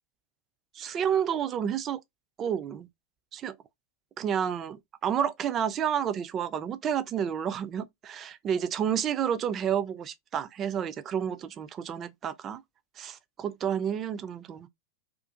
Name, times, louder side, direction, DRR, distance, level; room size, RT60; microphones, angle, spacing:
voice 1, 0.7-2.0 2.4-2.9 3.3-3.6 4.2-12.6 13.0-14.7, right 8 dB, 30° right, 0.3 m, -30 dB
2.5 x 2.3 x 2.4 m
figure-of-eight pair, 90°, 0 cm